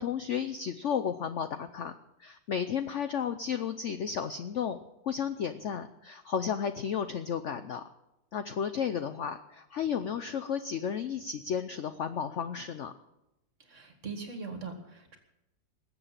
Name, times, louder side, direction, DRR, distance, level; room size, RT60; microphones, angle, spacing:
voice 1, 0.0-1.9 2.2-4.8 5.0-7.8 8.3-12.9, left 7 dB, 70° left, 10 dB, 0.7 m, -33 dB
voice 2, 13.7-15.2, right 4 dB, 40° right, 5 dB, 2.2 m, -41 dB
20.0 x 7.9 x 7.4 m, 0.92 s
omnidirectional pair, 2.0 m